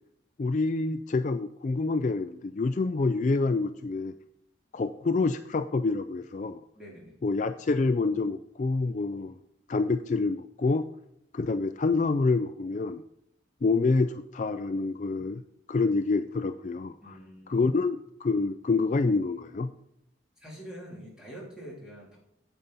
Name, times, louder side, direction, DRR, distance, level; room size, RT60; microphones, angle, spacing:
voice 1, 0.4-4.1 4.7-6.6 7.2-9.4 9.7-10.9 11.3-13.0 13.6-15.4 15.7-17.1 17.5-19.7, left 3 dB, 40° left, 10 dB, 0.3 m, -27 dB
voice 2, 6.7-7.2 17.0-17.7 20.4-22.2, equal, 5° right, -4 dB, 3.1 m, -45 dB
9.1 x 8.1 x 4.1 m, 0.77 s
head